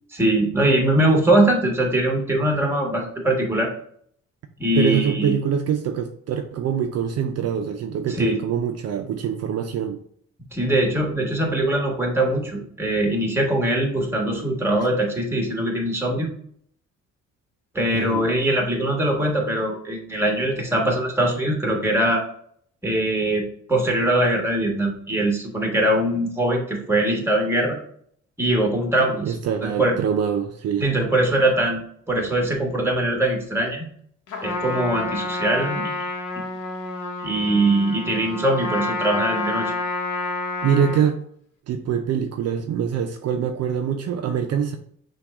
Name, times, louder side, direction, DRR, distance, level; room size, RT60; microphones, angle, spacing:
voice 1, 0.1-3.7 4.6-5.4 8.2-8.4 10.5-16.3 17.7-22.2 22.8-27.8 28.4-29.3 29.6-30.0 30.8-31.8 32.1-33.8 34.4-35.9 37.2-39.7, right 1 dB, 10° right, 1 dB, 1.3 m, -22 dB
voice 2, 4.8-10.0 17.9-18.3 29.2-30.9 40.6-41.1 41.7-44.8, right 8 dB, 55° right, 6 dB, 0.4 m, -24 dB
Trumpet, 34.3-41.1, left 3 dB, 85° left, 0.8 m, -29 dB
5.8 x 2.3 x 3.5 m, 0.64 s
cardioid pair, 90°, 30 cm